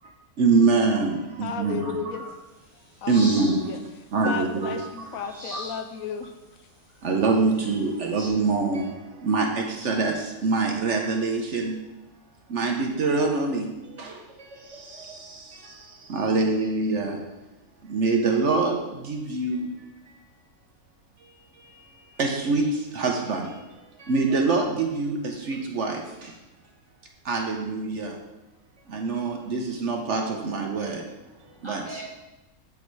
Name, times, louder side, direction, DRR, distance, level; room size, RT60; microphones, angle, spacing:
voice 1, 0.4-2.0 3.1-3.7 4.1-5.1 5.5-5.6 7.0-11.8 12.5-17.2 17.8-19.8 22.2-23.6 24.0-26.3 27.2-28.2 28.9-31.0 31.6-32.0, right 3 dB, 55° right, 2 dB, 1.0 m, -25 dB
voice 2, 1.4-2.2 3.0-3.8 4.2-6.3, left 6 dB, 70° left, 6 dB, 1.0 m, -34 dB
sound 1, 2.1-8.3, equal, 20° left, 1.9 m, -44 dB
voice 3, 30.7-32.1, right 2 dB, 20° right, -2 dB, 1.3 m, -42 dB
8.3 x 5.3 x 4.6 m, 1.0 s
omnidirectional pair, 1.6 m